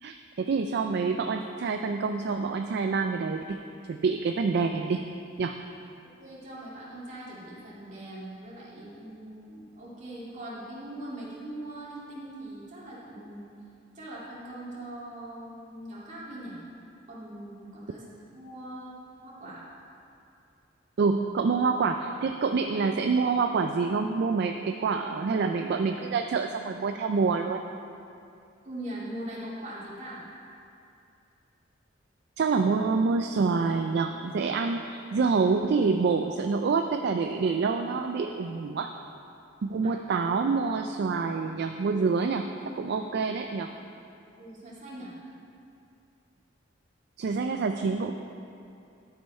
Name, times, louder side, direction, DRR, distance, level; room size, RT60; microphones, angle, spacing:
voice 1, 0.0-3.6 3.9-5.0 5.4-5.5 21.0-27.6 32.4-38.9 39.6-42.5 42.8-43.7 47.2-48.1, right 4 dB, 60° right, 5 dB, 0.4 m, -27 dB
voice 2, 6.2-13.4 13.9-16.6 17.1-18.0 18.3-19.6 28.6-30.2 39.8-40.0 44.4-45.1, right 1 dB, 40° right, -7 dB, 2.3 m, -41 dB
12.0 x 5.5 x 4.3 m, 2.6 s
head